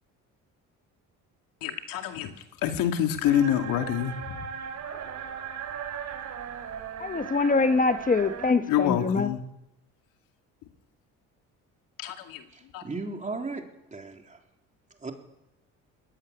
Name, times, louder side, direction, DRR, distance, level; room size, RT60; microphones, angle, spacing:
voice 1, 1.6-2.3 2.6-4.5 8.7-9.4 12.0-12.4 12.7-12.8, left 10 dB, 85° left, 2.5 m, -26 dB
sound 1, 3.2-8.5, right 8 dB, 65° right, 3.3 m, -38 dB
voice 2, 7.0-9.3, left 4 dB, 25° left, 1.2 m, -24 dB
voice 3, 12.5-14.4 14.9-15.1, right 3 dB, 20° right, 3.4 m, -37 dB
20.5 x 15.5 x 9.9 m
cardioid pair, 95°, 33 cm